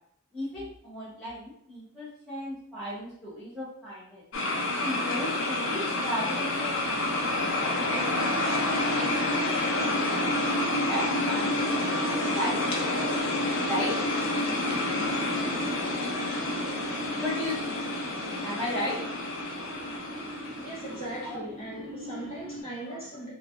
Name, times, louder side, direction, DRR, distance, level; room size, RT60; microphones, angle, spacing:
voice 1, 0.3-4.2 4.8-8.0 8.5-10.2 10.9-13.1 13.6-13.9 17.2-17.9 18.4-19.0 21.2-21.4 22.9-23.0, left 1 dB, ahead, -14 dB, 0.9 m, -36 dB
sound 1, 4.3-21.3, left 2 dB, 60° left, 0.5 m, -29 dB
sound 2, 6.6-22.6, right 1 dB, 70° right, 0.7 m, -35 dB
voice 2, 20.6-23.3, right 1 dB, 25° left, -9 dB, 1.4 m, -39 dB
3.3 x 2.2 x 2.4 m, 0.67 s
head